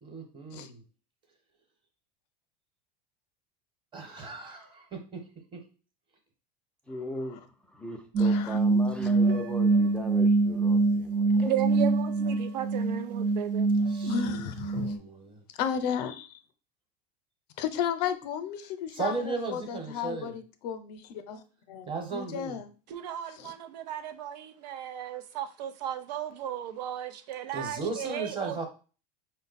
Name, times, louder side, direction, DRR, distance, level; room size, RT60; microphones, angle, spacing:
voice 1, 0.0-0.8 3.9-5.6 13.9-15.4 18.9-20.3 21.9-22.6 27.5-28.7, right 4 dB, 25° right, 1.2 m, -36 dB
voice 2, 6.9-11.6, left 1 dB, 5° left, 0.5 m, -39 dB
sound 1, 8.1-15.0, right 3 dB, 40° right, 0.7 m, -25 dB
voice 3, 8.2-8.6 14.0-14.9 15.6-16.4 17.6-21.9 22.1-22.7 23.3-23.5, left 8 dB, 75° left, 0.7 m, -34 dB
voice 4, 11.4-13.7 22.9-28.7, right 11 dB, 85° right, 0.7 m, -35 dB
5.1 x 2.1 x 4.1 m
supercardioid pair, 135°, 21 cm